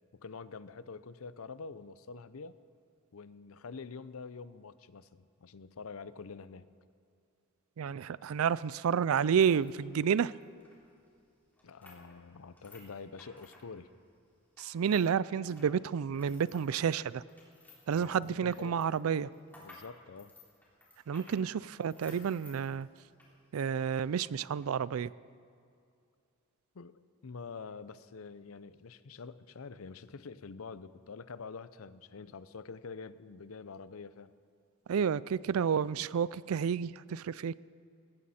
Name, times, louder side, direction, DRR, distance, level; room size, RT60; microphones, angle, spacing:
voice 1, 0.1-2.6 3.1-6.7 11.6-13.9 17.9-18.8 19.6-20.3 26.7-34.3, left 4 dB, 80° left, 15 dB, 0.6 m, -46 dB
voice 2, 7.8-10.3 14.6-17.2 17.9-19.3 21.1-22.9 23.5-25.1 34.9-37.6, right 7 dB, 80° right, 20 dB, 0.4 m, -30 dB
sound 1, 9.2-15.1 15.4-23.3 23.7-23.8 24.4-24.7, left 2 dB, 10° left, 3.7 m, -58 dB
19.5 x 16.5 x 4.3 m, 2.4 s
head